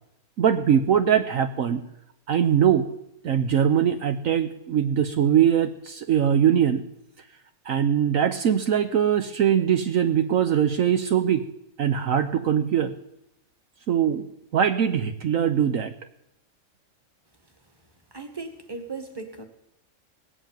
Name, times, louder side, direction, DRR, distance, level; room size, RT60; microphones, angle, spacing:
voice 1, 0.4-1.8 2.3-2.9 3.2-6.8 7.7-11.4 11.8-13.0 13.9-14.3 14.5-15.9, right 9 dB, 65° right, 8 dB, 1.2 m, -22 dB
voice 2, 18.1-19.4, right 4 dB, 15° right, 6 dB, 1.8 m, -37 dB
18.5 x 8.5 x 9.1 m, 0.80 s
omnidirectional pair, 1.5 m